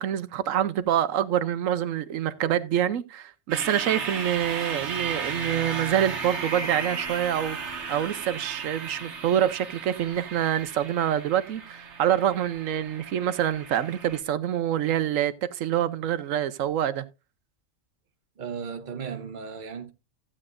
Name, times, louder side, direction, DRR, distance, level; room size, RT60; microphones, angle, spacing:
voice 1, 0.0-17.0, right 10 dB, 85° right, 1.1 m, -26 dB
sound 1, 3.5-14.2, right 5 dB, 60° right, 1.4 m, -35 dB
voice 2, 18.4-19.9, right 6 dB, 40° right, 1.0 m, -35 dB
15.0 x 8.7 x 2.5 m
omnidirectional pair, 1.3 m